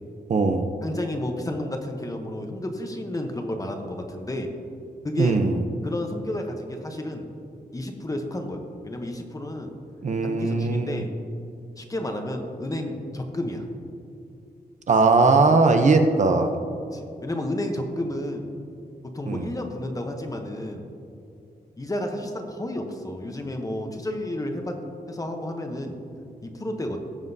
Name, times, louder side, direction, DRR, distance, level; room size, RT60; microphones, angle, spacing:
voice 1, 0.3-0.7 5.2-5.6 10.0-11.1 14.9-16.5 19.3-19.5, right 3 dB, 45° right, 6 dB, 0.6 m, -20 dB
voice 2, 0.8-4.5 5.0-5.4 5.8-7.3 7.7-9.7 10.2-11.1 11.8-13.6 16.9-18.6 19.0-20.9 21.8-24.8 25.1-26.0 26.4-27.0, left 1 dB, 20° left, 4 dB, 0.8 m, -31 dB
17.0 x 7.4 x 2.7 m, 2.6 s
wide cardioid pair, 170°, 17 cm